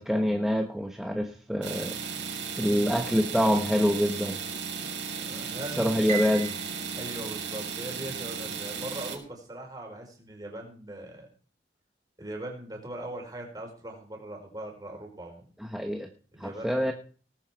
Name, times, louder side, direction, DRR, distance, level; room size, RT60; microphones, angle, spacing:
voice 1, 0.0-2.0 2.6-4.4 5.8-6.5 15.6-16.1 16.4-16.9, equal, ahead, 4 dB, 0.9 m, -26 dB
sound 1, 1.6-9.2, right 6 dB, 90° right, 6.5 m, -35 dB
voice 2, 5.2-6.0 6.9-11.3 12.2-15.4 16.3-16.8, right 1 dB, 20° right, 1 dB, 4.8 m, -40 dB
Piano, 6.1-8.3, right 7 dB, 40° right, 3.2 m, -39 dB
18.5 x 9.5 x 4.6 m, 0.42 s
head